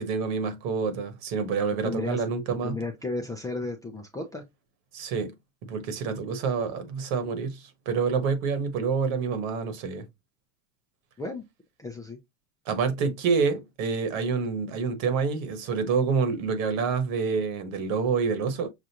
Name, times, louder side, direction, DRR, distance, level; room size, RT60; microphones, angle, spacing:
voice 1, 0.0-2.8 4.9-5.3 5.7-10.0 12.7-18.7, right 5 dB, 60° right, 1.4 m, -27 dB
voice 2, 1.8-2.2 2.6-4.4 11.2-11.4 11.8-12.2, left 2 dB, 10° left, 0.4 m, -33 dB
6.4 x 2.4 x 2.9 m
supercardioid pair, 130°, 44 cm